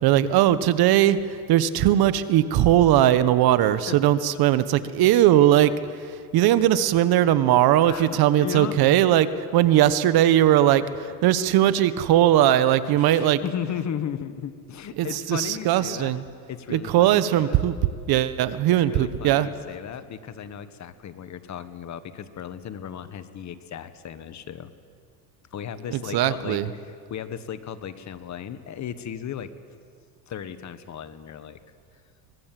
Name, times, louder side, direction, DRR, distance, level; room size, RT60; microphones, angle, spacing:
voice 1, 0.0-5.8 6.3-13.4 15.0-16.2 16.7-17.8 18.1-19.5 25.9-26.7, right 12 dB, 55° right, 14 dB, 1.1 m, -19 dB
voice 2, 3.9-4.2 7.8-8.8 13.0-16.1 16.5-17.6 18.7-24.7 25.5-29.5 30.3-31.6, left 8 dB, 40° left, 11 dB, 1.4 m, -35 dB
23.5 x 20.5 x 7.6 m, 2.2 s
supercardioid pair, 110°, 45 cm